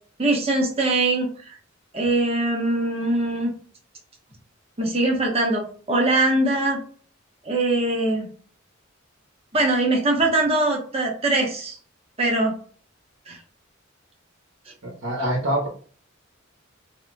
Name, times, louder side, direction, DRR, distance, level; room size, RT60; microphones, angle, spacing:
voice 1, 0.2-1.3 1.9-3.5 4.8-6.8 7.4-8.3 9.5-11.8 12.2-12.5 13.3-13.4, right 2 dB, 30° right, 0 dB, 1.0 m, -22 dB
voice 2, 14.8-15.7, right 1 dB, 65° right, -2 dB, 1.1 m, -25 dB
3.8 x 2.8 x 2.2 m, 0.43 s
head